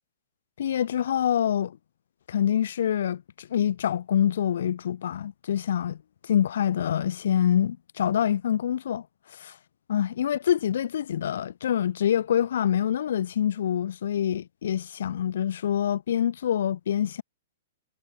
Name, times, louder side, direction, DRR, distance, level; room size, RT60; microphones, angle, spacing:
voice 1, 0.6-1.8 2.3-6.0 6.2-9.0 9.4-9.5 9.9-17.2, left 9 dB, 70° left, 2.7 m, -26 dB
hypercardioid pair, 125°, 0 cm